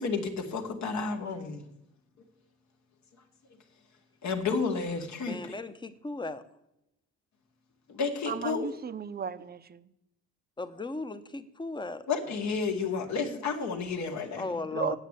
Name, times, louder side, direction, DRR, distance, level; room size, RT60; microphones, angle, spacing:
voice 1, 0.0-1.6 4.2-5.5 7.9-8.7 12.1-14.4 14.7-14.9, left 5 dB, 65° left, 1.7 m, -31 dB
voice 2, 5.2-6.4 10.6-12.1 14.4-15.0, left 2 dB, 15° left, 0.8 m, -36 dB
voice 3, 8.3-9.9 14.7-15.0, right 7 dB, 30° right, 0.6 m, -35 dB
8.8 x 7.3 x 8.1 m
cardioid pair, 90°, 30 cm